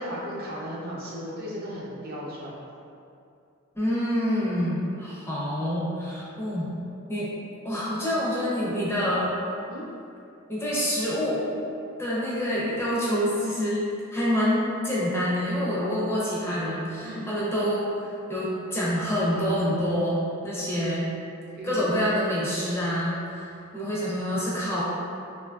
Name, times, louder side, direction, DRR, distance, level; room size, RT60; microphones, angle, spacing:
voice 1, 0.0-2.6 9.7-9.8 17.0-17.3 21.6-21.9, equal, 50° right, -5 dB, 0.5 m, -35 dB
voice 2, 3.7-6.8 7.1-7.3 7.6-9.4 10.5-11.5 12.0-21.1 21.6-24.8, equal, 10° left, -8 dB, 0.4 m, -27 dB
2.6 x 2.4 x 2.2 m, 2.6 s
head